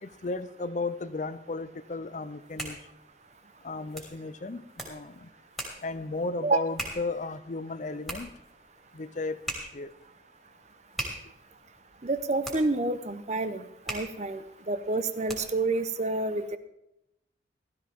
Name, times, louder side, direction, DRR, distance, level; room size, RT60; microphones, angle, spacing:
voice 1, 0.0-2.8 3.6-5.3 5.8-8.3 8.9-9.4 9.7-9.9, left 3 dB, 40° left, 14 dB, 0.5 m, -34 dB
sound 1, 2.3-15.7, right 1 dB, ahead, 3.0 m, -42 dB
voice 2, 12.0-14.4 14.7-16.6, right 3 dB, 35° right, 12 dB, 0.7 m, -28 dB
15.5 x 13.0 x 3.6 m, 0.82 s
head